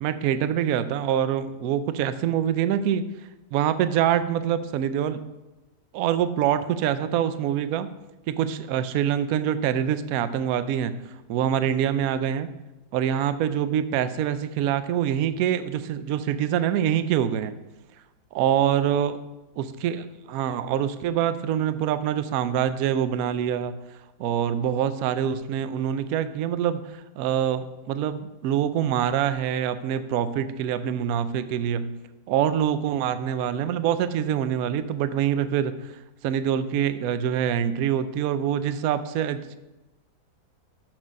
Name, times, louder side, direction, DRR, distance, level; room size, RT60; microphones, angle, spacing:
voice 1, 0.0-3.1 3.5-5.2 5.9-7.9 8.3-10.9 11.3-12.5 12.9-17.5 18.3-19.1 19.6-23.7 24.2-31.9 32.3-35.9 36.2-39.6, right 9 dB, 70° right, 12 dB, 0.9 m, -25 dB
6.1 x 6.0 x 5.2 m, 1.0 s
omnidirectional pair, 1.8 m